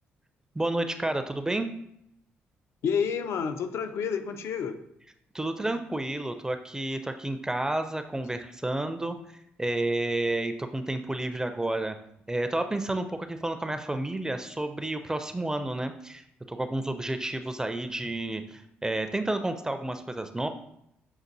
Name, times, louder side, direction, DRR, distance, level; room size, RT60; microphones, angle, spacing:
voice 1, 0.6-1.7 5.3-12.0 12.3-20.5, right 2 dB, 15° right, 8 dB, 0.4 m, -31 dB
voice 2, 2.8-4.8, left 6 dB, 70° left, 8 dB, 0.4 m, -29 dB
6.4 x 2.4 x 2.6 m, 0.76 s
supercardioid pair, 65°, 5 cm